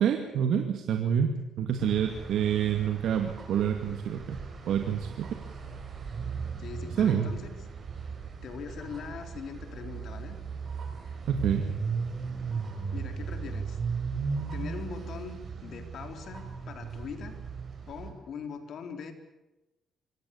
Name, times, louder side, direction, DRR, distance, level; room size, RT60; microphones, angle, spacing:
voice 1, 0.0-4.4 4.7-5.2 7.0-7.3 11.3-11.7, right 8 dB, 75° right, 5 dB, 2.2 m, -27 dB
sound 1, 1.8-18.1, right 5 dB, 45° right, 6.4 m, -37 dB
voice 2, 6.6-7.5 8.4-10.4 12.9-13.8 14.5-17.3 17.9-19.1, left 6 dB, 65° left, 6 dB, 4.0 m, -41 dB
25.0 x 17.0 x 8.6 m, 1.0 s
cardioid pair, 90°, 0 cm